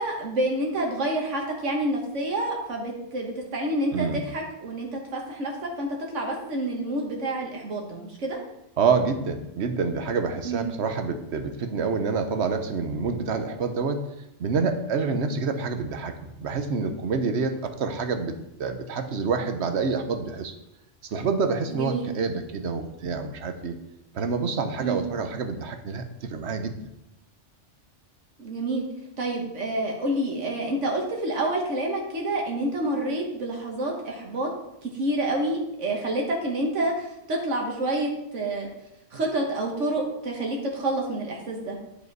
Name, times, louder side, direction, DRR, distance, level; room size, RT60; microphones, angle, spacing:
voice 1, 0.0-8.4 10.4-10.7 17.8-17.9 21.7-22.1 24.8-25.0 28.4-28.9 29.2-34.5 34.8-38.7 39.1-41.8, right 1 dB, 85° right, 0 dB, 1.7 m, -28 dB
voice 2, 3.9-4.2 8.8-14.1 14.4-18.3 18.6-20.5 21.1-23.7 24.1-26.7, right 5 dB, 70° right, 7 dB, 1.1 m, -27 dB
10.0 x 5.3 x 4.6 m, 0.85 s
omnidirectional pair, 1.2 m